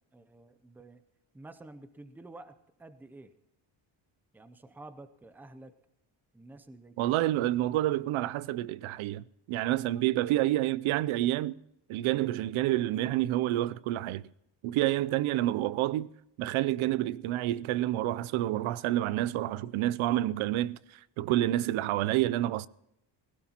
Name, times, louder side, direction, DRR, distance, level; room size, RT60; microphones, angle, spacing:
voice 1, 0.1-1.0 1.3-3.3 4.3-5.8 6.3-7.2, right 2 dB, 5° right, 0.5 m, -50 dB
voice 2, 7.0-11.6 11.9-14.2 14.6-16.1 16.4-22.7, right 15 dB, 85° right, 0.6 m, -28 dB
19.5 x 16.5 x 2.9 m
cardioid pair, 170°, 47 cm